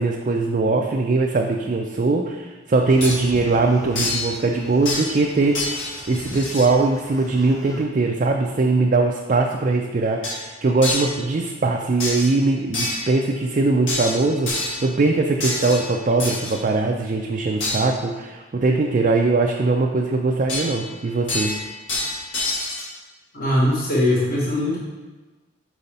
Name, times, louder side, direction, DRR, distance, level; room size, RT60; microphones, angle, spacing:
voice 1, 0.0-21.5, right 3 dB, 40° right, 1 dB, 0.4 m, -21 dB
sound 1, 2.9-7.8, left 1 dB, 20° left, 0.5 m, -40 dB
sound 2, 3.0-3.2 3.9-4.3 4.8-5.3 5.5-6.7 10.2-10.4 10.8-11.2 12.0-12.4 12.7-13.2 13.9-14.9 15.4-16.6 17.6-17.8 20.5-20.9 21.3-22.9, left 2 dB, 75° left, 1.7 m, -27 dB
voice 2, 23.3-24.8, left 1 dB, 45° left, -4 dB, 1.1 m, -20 dB
5.3 x 4.8 x 4.2 m, 1.2 s
head